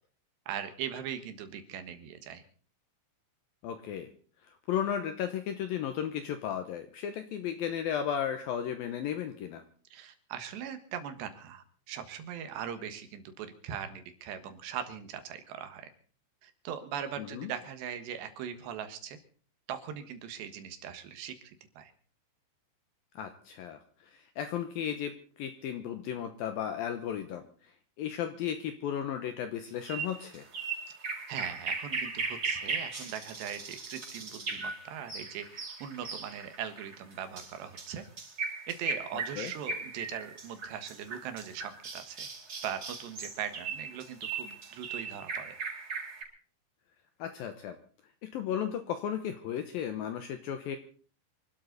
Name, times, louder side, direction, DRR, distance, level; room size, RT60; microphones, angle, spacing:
voice 1, 0.5-2.4 9.9-15.9 16.4-19.2 19.7-21.9 31.3-38.0 38.7-42.3 42.6-45.6, right 8 dB, 75° right, 9 dB, 3.6 m, -40 dB
voice 2, 3.6-4.1 4.5-9.6 17.2-17.5 23.2-23.8 24.1-27.4 28.0-30.5 39.4-39.5 47.2-47.8 48.2-50.8, left 9 dB, 75° left, 8 dB, 2.3 m, -34 dB
sound 1, 29.8-46.2, right 4 dB, 30° right, 5.2 m, -38 dB
26.5 x 12.5 x 4.1 m, 0.43 s
omnidirectional pair, 5.2 m